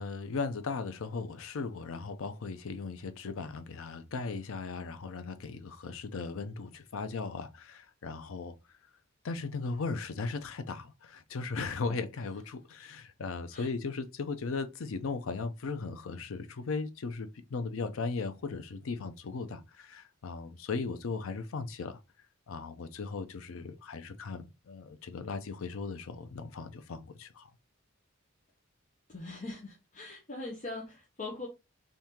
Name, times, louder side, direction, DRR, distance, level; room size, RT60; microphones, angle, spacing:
voice 1, 0.0-8.5 9.2-22.0 22.5-27.5, left 4 dB, 85° left, 0.5 m, -37 dB
voice 2, 29.1-31.5, left 2 dB, 40° left, 0.8 m, -41 dB
3.6 x 2.7 x 2.9 m
head